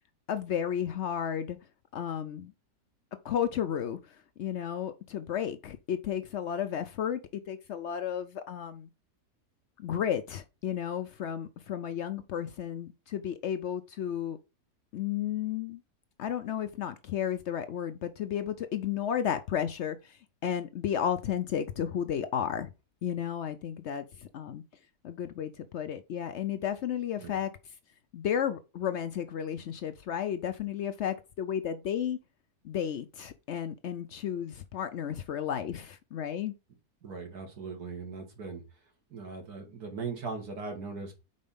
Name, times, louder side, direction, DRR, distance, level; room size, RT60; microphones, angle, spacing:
voice 1, 0.3-1.6 1.9-2.5 3.2-4.0 4.4-8.9 9.8-14.4 14.9-15.8 16.2-20.1 20.4-22.7 23.0-24.6 25.0-27.5 28.1-32.2 32.6-36.5, left 9 dB, 65° left, 0.7 m, -33 dB
voice 2, 37.0-38.6 39.1-41.1, right 4 dB, 75° right, 2.1 m, -39 dB
5.3 x 4.2 x 5.3 m
omnidirectional pair, 1.7 m